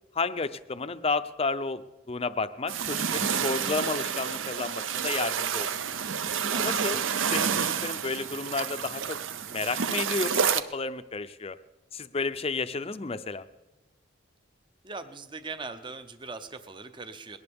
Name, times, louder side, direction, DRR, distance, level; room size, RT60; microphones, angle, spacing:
voice 1, 0.1-5.7 6.6-7.0 7.3-9.2 9.5-11.6 11.9-13.5, left 4 dB, 30° left, 12 dB, 0.5 m, -32 dB
sound 1, 2.7-10.6, right 7 dB, 70° right, 0.6 m, -29 dB
voice 2, 6.5-6.8 14.8-17.4, right 4 dB, 25° right, 10 dB, 0.6 m, -40 dB
21.0 x 17.5 x 3.6 m, 1.1 s
head